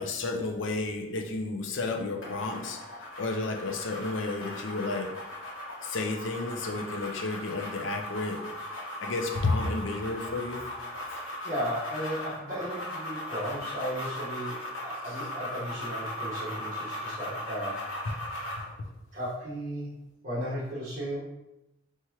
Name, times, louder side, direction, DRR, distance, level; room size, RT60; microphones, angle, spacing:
voice 1, 0.0-5.1 5.8-8.4 9.0-10.6 14.6-14.7 15.1-15.2 18.8-18.9, left 3 dB, 70° left, 3 dB, 0.6 m, -32 dB
sound 1, 2.2-18.7, left 1 dB, 85° left, 1.2 m, -38 dB
voice 2, 11.4-17.8 19.1-19.9 20.2-21.2, equal, 50° right, -11 dB, 1.5 m, -35 dB
4.4 x 3.5 x 3.0 m, 0.94 s
head